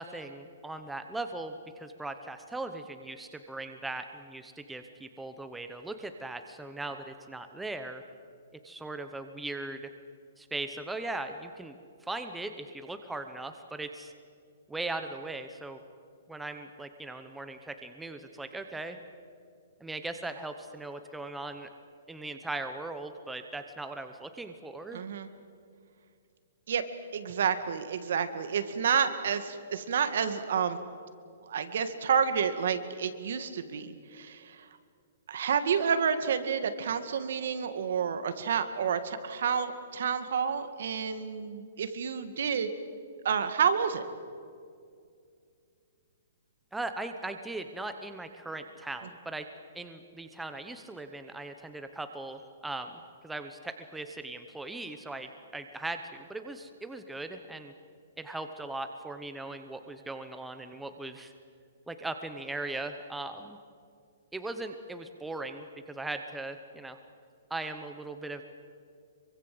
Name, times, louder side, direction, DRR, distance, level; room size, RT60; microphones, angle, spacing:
voice 1, 0.0-8.0 8.6-9.9 10.4-14.1 14.7-15.8 16.3-19.0 19.8-21.7 22.1-25.0 46.7-49.5 49.7-57.7 58.2-61.3 61.9-63.6 64.3-67.0 67.5-68.4, right 2 dB, 5° right, 7 dB, 0.9 m, -39 dB
voice 2, 24.9-25.3 26.7-26.8 27.1-30.8 31.5-34.6 35.3-42.7 43.2-44.1, right 7 dB, 60° right, 10 dB, 2.1 m, -29 dB
25.5 x 24.0 x 7.9 m, 2.3 s
hypercardioid pair, 170°, 0 cm